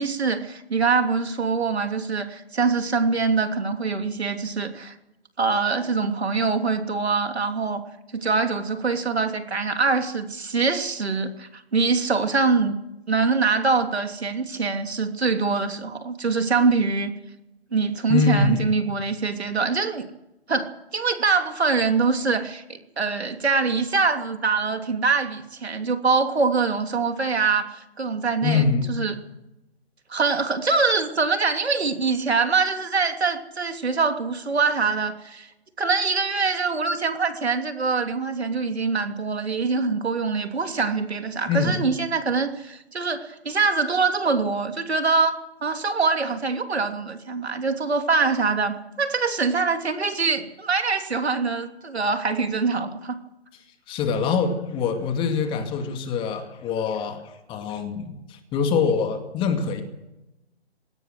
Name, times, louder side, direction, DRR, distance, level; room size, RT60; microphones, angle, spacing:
voice 1, 0.0-4.9 5.4-7.8 8.1-12.8 13.1-17.1 17.7-20.1 20.5-20.7 20.9-29.2 30.1-35.5 35.8-45.4 45.6-53.2, right 4 dB, 75° right, 6 dB, 3.1 m, -24 dB
voice 2, 18.1-18.6 28.4-28.8 41.5-41.8 53.9-59.8, left 5 dB, 15° left, 6 dB, 2.4 m, -24 dB
21.0 x 18.0 x 7.8 m, 0.91 s
figure-of-eight pair, 145°, 33 cm